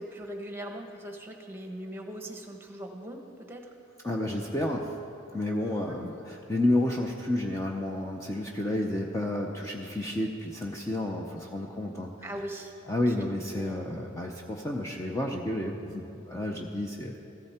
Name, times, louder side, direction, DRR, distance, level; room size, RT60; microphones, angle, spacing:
voice 1, 0.0-3.7 5.9-6.0 12.2-12.7 13.2-13.3 13.6-13.8, right 1 dB, 10° right, 3 dB, 1.2 m, -40 dB
voice 2, 4.0-5.0 5.3-12.1 12.9-17.2, left 1 dB, 15° left, -1 dB, 0.7 m, -30 dB
14.5 x 14.5 x 4.4 m, 2.8 s
head